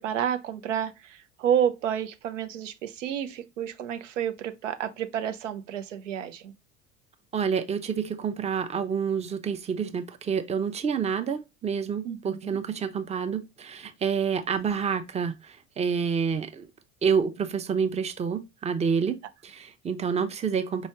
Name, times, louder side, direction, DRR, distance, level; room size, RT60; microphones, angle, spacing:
voice 1, 0.0-6.5 12.0-12.6, right 9 dB, 80° right, 0.6 m, -30 dB
voice 2, 7.3-16.7 17.0-19.2 19.4-20.9, right 6 dB, 20° right, 0.6 m, -28 dB
4.7 x 3.1 x 2.8 m
hypercardioid pair, 70°, 37 cm